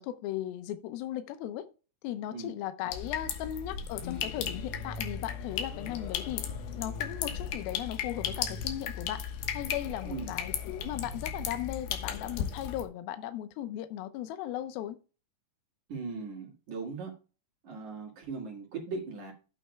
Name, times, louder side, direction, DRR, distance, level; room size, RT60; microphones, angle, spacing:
voice 1, 0.0-1.7 2.0-6.5 6.8-9.2 9.5-15.0, left 12 dB, 90° left, 2.1 m, -37 dB
sound 1, 2.9-12.8, left 8 dB, 70° left, 2.6 m, -36 dB
voice 2, 15.9-17.1 17.6-19.3, right 4 dB, 50° right, 2.8 m, -39 dB
12.0 x 8.9 x 2.3 m
omnidirectional pair, 5.4 m